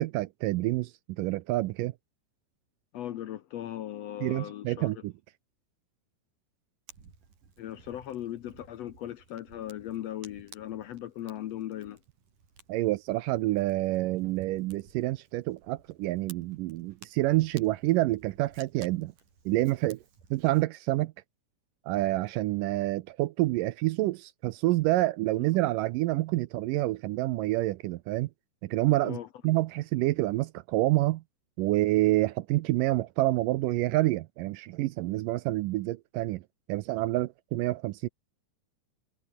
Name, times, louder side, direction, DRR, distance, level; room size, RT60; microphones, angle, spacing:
voice 1, 0.0-1.9 4.2-5.1 12.7-19.1 19.5-20.0 20.3-21.1 21.9-28.3 28.6-29.2 29.4-31.2 31.6-36.4 36.7-38.1, right 18 dB, 80° right, 2.1 m, -28 dB
voice 2, 2.9-4.9 7.6-12.0 29.0-29.3, left 12 dB, 75° left, 1.5 m, -38 dB
Fire, 6.9-20.6, right 5 dB, 60° right, 6.0 m, -56 dB
omnidirectional pair, 4.1 m